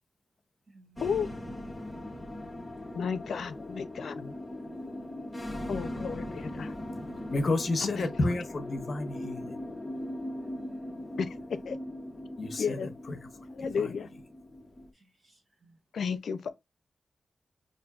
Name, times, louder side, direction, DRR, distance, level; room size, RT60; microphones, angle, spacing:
voice 1, 0.7-1.2 4.6-4.9 7.1-7.7 10.5-11.1 14.0-14.2 14.9-15.8, right 2 dB, 45° right, 1.1 m, -60 dB
sound 1, 1.0-14.9, left 1 dB, 15° left, 0.6 m, -40 dB
voice 2, 2.9-4.3 5.7-6.8 7.8-8.1 11.2-11.8 12.6-12.9 13.5-14.1 15.9-16.5, left 6 dB, 85° left, 0.4 m, -33 dB
voice 3, 7.3-9.6 12.4-12.9 13.8-13.9, left 2 dB, 45° left, 0.8 m, -30 dB
5.3 x 2.6 x 2.3 m
wide cardioid pair, 125°, 0 cm